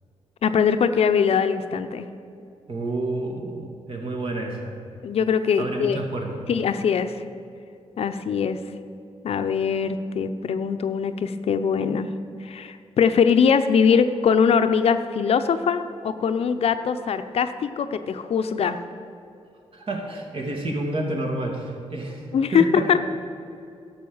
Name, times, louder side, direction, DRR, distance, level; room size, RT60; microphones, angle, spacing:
voice 1, 0.4-2.1 5.0-6.0 6.5-7.1 8.0-8.6 9.2-12.1 12.4-18.8 22.3-23.0, left 6 dB, 65° left, 9 dB, 0.6 m, -22 dB
voice 2, 2.7-4.8 5.6-6.4 19.7-22.9, right 2 dB, 55° right, 1 dB, 2.2 m, -29 dB
11.0 x 6.7 x 7.1 m, 2.6 s
cardioid pair, 75°, 11 cm